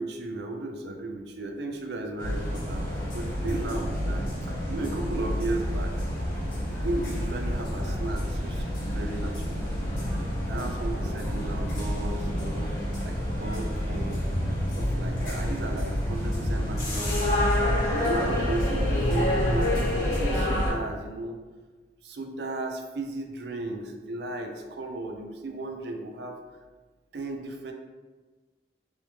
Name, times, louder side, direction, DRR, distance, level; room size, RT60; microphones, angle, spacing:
voice 1, 0.0-6.0 6.6-10.0 10.4-12.7 13.0-14.2 14.8-17.4 17.9-21.4 22.0-26.4 27.1-27.7, right 2 dB, 65° right, 4 dB, 0.4 m, -35 dB
sound 1, 2.2-20.7, left 1 dB, 50° left, 0.9 m, -28 dB
3.2 x 3.1 x 2.9 m, 1.3 s
head